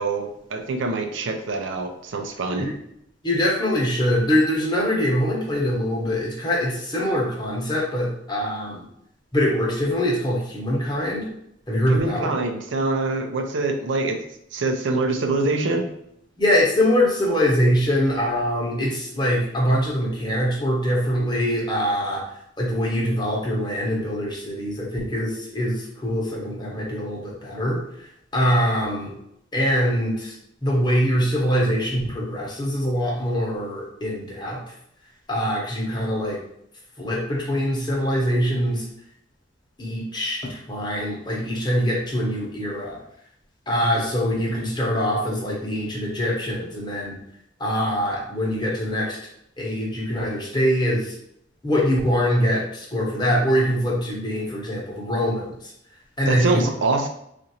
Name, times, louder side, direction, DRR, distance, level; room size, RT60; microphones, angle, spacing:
voice 1, 0.0-2.7 11.9-14.2 14.5-15.9 56.3-57.1, right 3 dB, 85° right, 4 dB, 0.5 m, -25 dB
voice 2, 3.2-8.8 9.3-11.3 11.7-12.4 16.4-22.2 22.6-28.1 28.3-29.1 29.5-30.3 30.6-34.6 35.3-36.4 37.0-38.8 39.8-43.0 43.7-47.2 47.6-49.2 49.6-51.1 51.6-55.7 56.2-56.6, equal, 25° left, -4 dB, 0.9 m, -23 dB
4.0 x 2.5 x 2.8 m, 0.76 s
head